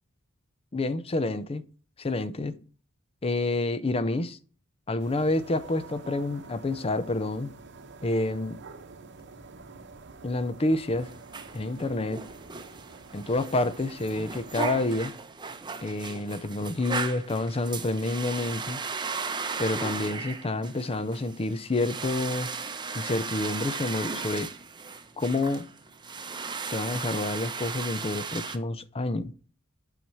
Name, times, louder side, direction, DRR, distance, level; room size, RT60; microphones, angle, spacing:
voice 1, 0.7-1.6 2.0-2.5 3.2-4.4 4.9-7.5 8.0-8.6 10.2-11.1 11.5-12.2 13.1-15.1 15.8-18.8 19.6-22.5 22.9-24.5 25.2-25.7 26.7-29.3, left 2 dB, 25° left, 0.5 m, -28 dB
sound 1, 5.0-15.1, right 4 dB, 60° right, 0.9 m, -48 dB
sound 2, 10.9-28.6, right 4 dB, 20° right, 0.7 m, -36 dB
9.1 x 5.6 x 4.5 m
head